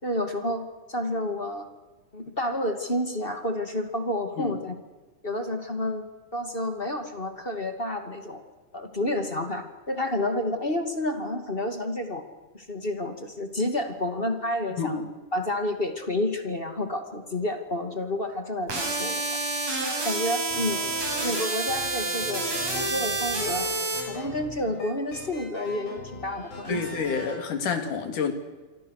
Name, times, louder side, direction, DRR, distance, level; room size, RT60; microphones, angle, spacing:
voice 1, 0.0-1.7 2.1-4.7 5.2-6.1 6.3-8.4 8.7-12.2 12.5-15.0 15.3-19.2 19.8-20.8 21.2-22.4 22.7-23.7 24.1-26.8, left 1 dB, 20° left, 6 dB, 2.3 m, -30 dB
voice 2, 14.8-15.1 26.7-28.3, left 5 dB, 80° left, 6 dB, 4.3 m, -28 dB
sound 1, 18.7-24.0, right 3 dB, 55° right, 7.1 m, -29 dB
sound 2, 20.5-27.4, left 2 dB, 55° left, 7.5 m, -40 dB
29.0 x 24.5 x 6.6 m, 1.2 s
omnidirectional pair, 3.6 m